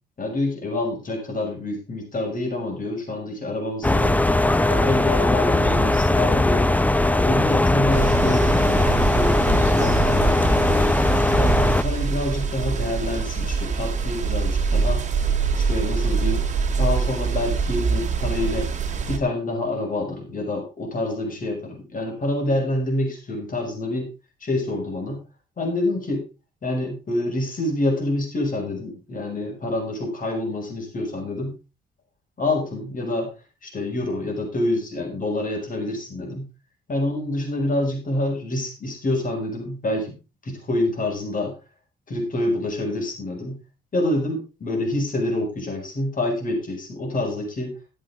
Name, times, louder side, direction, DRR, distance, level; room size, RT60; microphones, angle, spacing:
voice 1, 0.2-4.1 4.7-6.7 7.2-11.0 11.4-15.0 15.5-16.4 16.8-18.7 19.1-24.1 24.4-25.2 25.6-26.3 26.6-31.5 32.4-33.3 33.6-36.5 36.9-40.1 40.4-41.6 42.1-43.6 43.9-47.7, left 1 dB, 45° left, 2 dB, 6.3 m, -27 dB
sound 1, 3.8-11.8, left 2 dB, 10° left, 0.8 m, -19 dB
sound 2, 7.9-19.2, right 5 dB, 35° right, 2.4 m, -24 dB
14.5 x 10.0 x 3.7 m, 0.30 s
cardioid pair, 90°, 20 cm